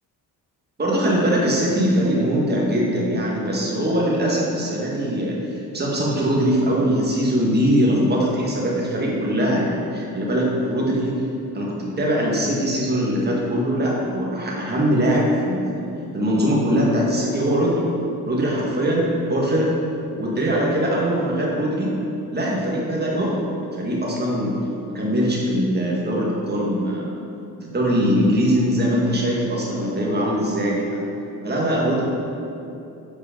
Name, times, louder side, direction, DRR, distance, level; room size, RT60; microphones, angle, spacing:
voice 1, 0.8-11.2 11.5-17.9 18.2-19.7 20.2-22.0 22.3-23.4 23.8-24.6 24.9-27.1 27.6-31.0 31.4-32.1, equal, 25° right, -4 dB, 1.9 m, -21 dB
7.8 x 4.8 x 5.2 m, 2.7 s
cardioid pair, 95°, 39 cm